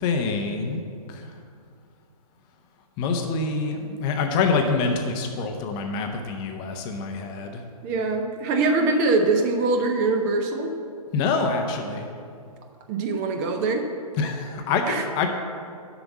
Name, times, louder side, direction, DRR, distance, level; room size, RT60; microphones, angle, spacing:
voice 1, 0.0-0.8 1.1-1.3 3.0-7.6 11.1-12.1 14.2-15.3, left 4 dB, 20° left, 4 dB, 0.7 m, -26 dB
voice 2, 7.8-10.7 12.9-13.9 14.9-15.0, right 3 dB, 25° right, 5 dB, 0.7 m, -23 dB
7.7 x 5.9 x 7.2 m, 2.4 s
hypercardioid pair, 135°, 20 cm